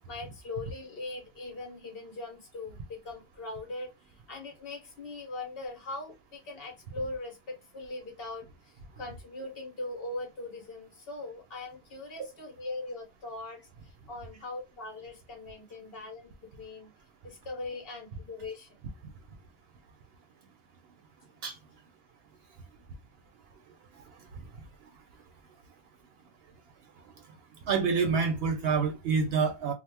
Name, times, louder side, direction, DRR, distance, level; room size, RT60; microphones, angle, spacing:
voice 1, 0.1-16.9 17.2-18.8, left 2 dB, 65° left, 0.9 m, -41 dB
voice 2, 27.7-29.7, right 5 dB, 70° right, 0.8 m, -27 dB
2.9 x 2.0 x 3.3 m
omnidirectional pair, 1.1 m